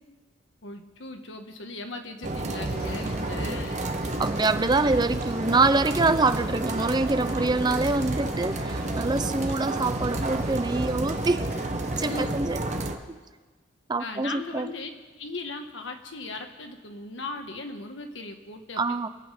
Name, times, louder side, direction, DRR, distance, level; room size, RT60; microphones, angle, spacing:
voice 1, 0.6-3.9 12.0-12.4 14.0-14.9 15.2-19.1, left 2 dB, 80° left, 5 dB, 1.6 m, -38 dB
sound 1, 2.2-13.0, right 2 dB, 40° right, 1.1 m, -30 dB
sound 2, 2.7-12.4, left 2 dB, 55° left, 1.6 m, -44 dB
voice 2, 4.2-11.4 12.0-12.6 13.1-13.2 13.9-14.7 18.8-19.1, right 3 dB, 20° right, 11 dB, 0.5 m, -25 dB
25.0 x 8.5 x 5.2 m, 1.3 s
head